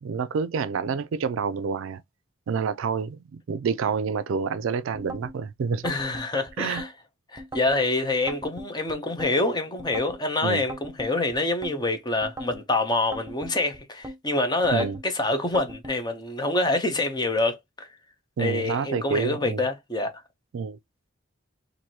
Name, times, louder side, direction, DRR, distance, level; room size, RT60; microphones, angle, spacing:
voice 1, 0.0-2.0 2.5-3.2 3.5-5.9 6.6-6.8 10.4-10.6 14.7-15.0 18.4-19.6 20.5-20.8, right 5 dB, 70° right, 0.3 m, -28 dB
sound 1, 4.9-5.4 5.8-6.9 7.4-7.8 8.3-9.3 9.8-10.2 10.7-11.8 12.2-12.6 13.1-14.2 14.6-15.1 15.5-16.0, right 1 dB, 15° right, 0.6 m, -39 dB
voice 2, 5.8-6.9 7.3-17.9 18.4-20.1, left 2 dB, 20° left, 0.7 m, -26 dB
4.5 x 2.6 x 2.8 m
head